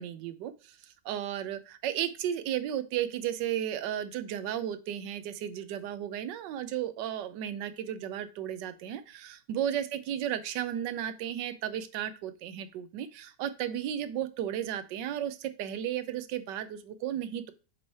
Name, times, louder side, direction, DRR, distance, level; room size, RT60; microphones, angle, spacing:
voice 1, 0.0-17.5, right 10 dB, 90° right, 12 dB, 1.3 m, -34 dB
7.1 x 3.2 x 4.1 m, 0.33 s
omnidirectional pair, 1.9 m